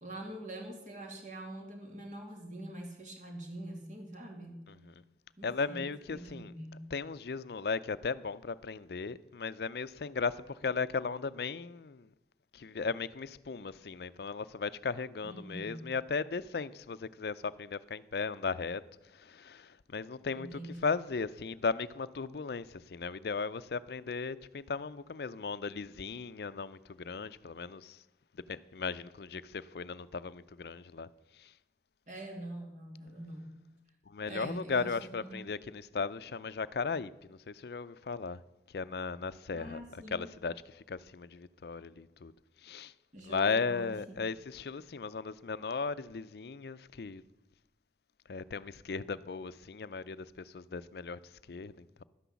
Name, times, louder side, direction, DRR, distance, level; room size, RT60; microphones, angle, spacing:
voice 1, 0.0-4.7 5.4-6.8 15.2-15.9 20.3-20.7 32.1-33.5 34.2-35.4 39.5-40.3 43.1-44.2, right 1 dB, 45° right, 2.5 m, -44 dB
voice 2, 5.4-6.5 6.9-12.1 12.5-18.8 19.1-28.0 28.5-31.5 34.1-38.4 38.7-42.3 42.6-42.9 43.2-47.2 48.3-52.0, left 4 dB, 65° left, 0.5 m, -36 dB
11.5 x 10.0 x 7.0 m
head